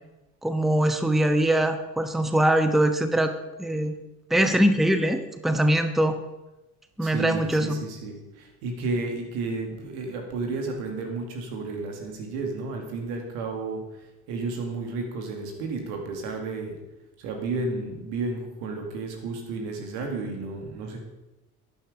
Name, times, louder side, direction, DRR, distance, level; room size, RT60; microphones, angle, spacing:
voice 1, 0.4-3.9 4.3-6.2 7.0-7.8, right 1 dB, ahead, 8 dB, 1.1 m, -22 dB
voice 2, 7.0-13.8 14.3-16.8 17.2-21.0, right 3 dB, 70° right, 2 dB, 2.3 m, -32 dB
12.0 x 9.9 x 5.0 m, 0.99 s
figure-of-eight pair, 45°, 44 cm